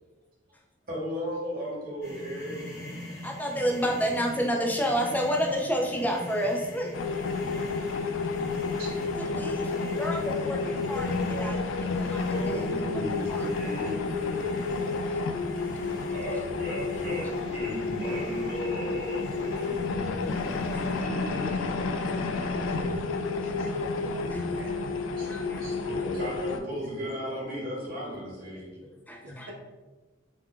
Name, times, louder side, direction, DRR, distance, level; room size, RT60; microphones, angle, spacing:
voice 1, 0.9-2.6 8.8-8.9 9.2-9.4 12.3-15.0 16.1-23.1 23.4-23.7 24.4-24.6 25.2-25.3 25.6-28.7, equal, 50° right, -6 dB, 1.0 m, -36 dB
sound 1, 2.0-21.0, left 1 dB, 60° left, 1.1 m, -44 dB
voice 2, 3.2-6.9 9.2-11.6 12.0-13.0 13.3-13.5 13.8-13.9 15.1-15.2 16.0-16.1 20.2-21.0 21.7-22.1 23.5-23.7 24.0-24.5 25.2-25.6 28.9-29.5, equal, 10° left, 0 dB, 0.4 m, -31 dB
sound 2, 6.9-26.6, left 4 dB, 90° left, 0.3 m, -30 dB
voice 3, 9.6-12.6 12.9-14.2 24.3-25.0 29.2-29.5, equal, 70° right, -1 dB, 0.7 m, -43 dB
sound 3, 13.8-14.2 14.9-15.4 15.9-16.2 17.0-17.6 18.0-18.4 19.3-19.6 20.2-20.7 21.4-22.2 22.6-23.0 23.7-24.2, left 2 dB, 30° left, 0.8 m, -51 dB
2.3 x 2.2 x 3.7 m, 1.2 s
head